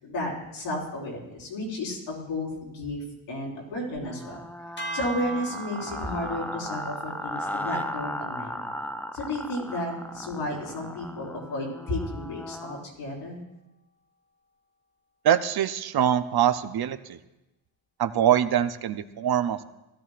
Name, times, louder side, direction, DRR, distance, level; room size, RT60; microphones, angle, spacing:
voice 1, 0.0-4.4 4.9-8.6 9.1-13.4, left 1 dB, 90° left, -2 dB, 4.8 m, -33 dB
sound 1, 4.0-12.9, left 1 dB, 5° left, 0.4 m, -37 dB
sound 2, 4.8-11.1, right 3 dB, 25° left, 1.2 m, -41 dB
voice 2, 15.2-17.2 18.0-19.6, right 10 dB, 50° right, 11 dB, 0.8 m, -24 dB
16.5 x 13.5 x 2.5 m, 0.97 s
cardioid pair, 90°, 47 cm